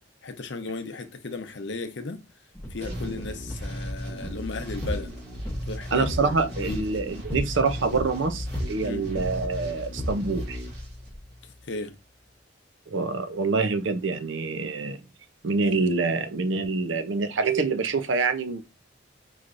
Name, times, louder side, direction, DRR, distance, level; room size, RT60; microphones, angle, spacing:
voice 1, 0.2-2.2 2.7-5.2 5.7-6.8 8.8-9.1 11.4-11.9, left 3 dB, 65° left, 0.7 m, -36 dB
sound 1, 2.5-11.2, equal, 10° left, 0.7 m, -37 dB
sound 2, 2.8-11.7, equal, 55° right, 1.8 m, -36 dB
voice 2, 5.9-10.6 12.9-15.0 15.4-18.6, right 4 dB, 75° right, 0.6 m, -26 dB
5.8 x 3.0 x 2.5 m
head